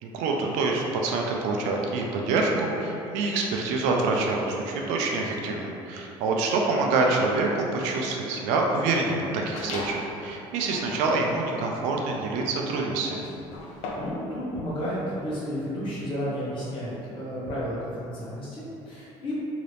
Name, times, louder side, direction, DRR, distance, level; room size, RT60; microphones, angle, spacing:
voice 1, 0.0-13.3, right 3 dB, 85° right, 0 dB, 0.5 m, -26 dB
sound 1, 9.6-10.2 10.6-14.3, left 2 dB, 75° left, 0.5 m, -38 dB
voice 2, 13.9-19.4, equal, 45° left, -9 dB, 1.2 m, -32 dB
2.8 x 2.6 x 3.3 m, 2.8 s
cardioid pair, 110°, 12 cm